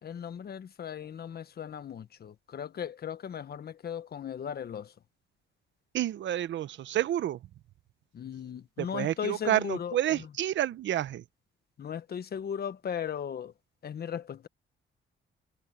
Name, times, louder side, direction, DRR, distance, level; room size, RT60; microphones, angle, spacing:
voice 1, 0.0-4.9 8.1-10.3 11.8-13.5 13.8-14.5, left 8 dB, 50° left, 1.4 m, -37 dB
voice 2, 5.9-7.4 8.8-11.2, right 12 dB, 70° right, 0.9 m, -29 dB
cardioid pair, 90°, 20 cm